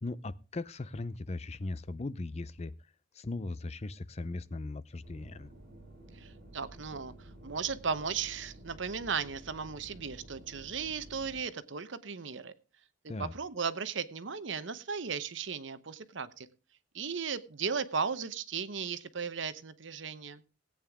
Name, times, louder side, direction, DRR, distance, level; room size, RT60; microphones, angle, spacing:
voice 1, 0.0-2.7 3.1-5.5 13.1-13.3, left 2 dB, 35° left, 17 dB, 0.5 m, -38 dB
sound 1, 5.0-11.4, right 1 dB, 50° right, 5.7 m, -52 dB
voice 2, 6.2-7.1 7.4-12.5 13.2-16.5 16.9-20.4, right 6 dB, 75° right, 13 dB, 0.9 m, -36 dB
17.5 x 8.9 x 3.6 m, 0.33 s
head